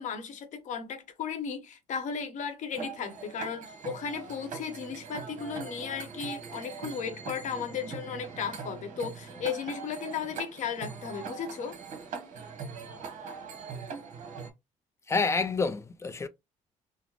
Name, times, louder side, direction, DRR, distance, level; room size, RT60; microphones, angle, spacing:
voice 1, 0.0-11.8, left 6 dB, 65° left, 0.9 m, -35 dB
sound 1, 2.7-14.5, right 5 dB, 70° right, 1.1 m, -42 dB
voice 2, 15.1-16.3, left 4 dB, 20° left, 0.5 m, -28 dB
3.9 x 2.1 x 3.0 m
cardioid pair, 115°, 13 cm